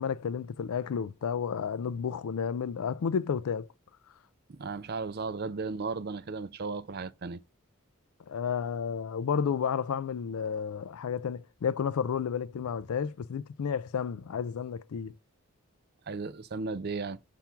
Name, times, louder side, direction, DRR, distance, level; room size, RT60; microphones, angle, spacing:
voice 1, 0.0-3.7 8.3-15.1, left 7 dB, 80° left, 0.4 m, -31 dB
voice 2, 4.5-7.4 16.1-17.2, right 4 dB, 45° right, 0.5 m, -35 dB
5.8 x 3.6 x 5.8 m
head